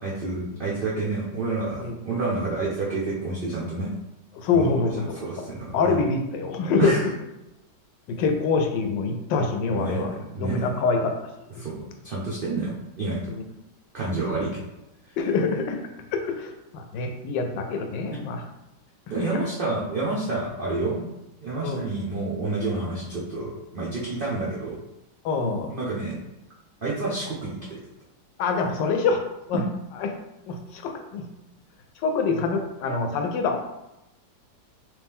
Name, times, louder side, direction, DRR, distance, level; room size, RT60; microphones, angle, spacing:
voice 1, 0.0-3.9 4.5-4.7 5.1-6.0 6.8-7.0 9.7-10.0 10.3-10.7 11.6-13.3 13.9-14.6 19.1-21.1 21.4-24.8 25.7-26.3 26.8-27.8, right 3 dB, 80° right, -6 dB, 0.4 m, -29 dB
voice 2, 4.3-5.2 5.7-7.0 8.1-11.2 13.3-13.4 15.2-15.8 16.1-18.4 19.3-19.4 21.6-21.8 25.2-25.7 28.4-29.2 29.5-29.6 30.0-30.1 30.5-31.3 32.0-33.6, left 4 dB, 80° left, 5 dB, 1.2 m, -25 dB
3.1 x 3.1 x 3.5 m, 0.92 s
omnidirectional pair, 1.9 m